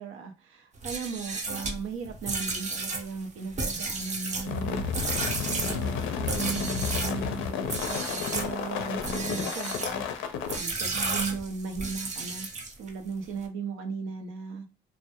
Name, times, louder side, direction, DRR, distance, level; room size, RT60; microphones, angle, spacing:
voice 1, 0.0-4.8 5.5-10.1 10.6-12.5 12.8-14.7, right 5 dB, 85° right, 0.6 m, -36 dB
sound 1, 0.7-7.2 7.7-8.5 9.0-10.0 10.5-12.9, right 3 dB, 35° right, 0.6 m, -33 dB
sound 2, 4.5-10.6, left 7 dB, 80° left, 0.4 m, -32 dB
2.1 x 2.1 x 2.7 m
cardioid pair, 90°, 20 cm